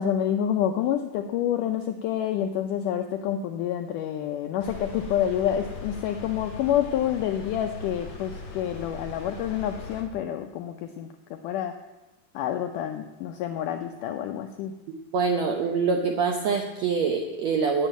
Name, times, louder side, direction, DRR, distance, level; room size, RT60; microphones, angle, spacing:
voice 1, 0.0-11.8 12.4-14.7, left 10 dB, 85° left, 6 dB, 1.8 m, -28 dB
sound 1, 4.6-10.0, left 3 dB, 40° left, 2.2 m, -39 dB
voice 2, 15.1-17.9, right 5 dB, 80° right, 3 dB, 1.5 m, -25 dB
9.0 x 8.3 x 8.9 m, 1.0 s
omnidirectional pair, 4.3 m